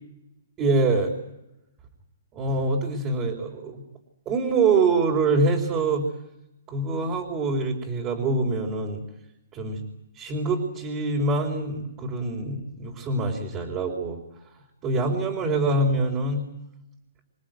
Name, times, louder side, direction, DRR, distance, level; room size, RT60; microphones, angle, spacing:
voice 1, 0.6-1.2 2.3-3.8 4.3-6.1 6.7-9.0 9.5-9.8 10.2-14.2 14.8-16.5, right 3 dB, 25° right, 0 dB, 4.4 m, -25 dB
27.5 x 18.0 x 9.3 m, 0.85 s
hypercardioid pair, 135°, 0 cm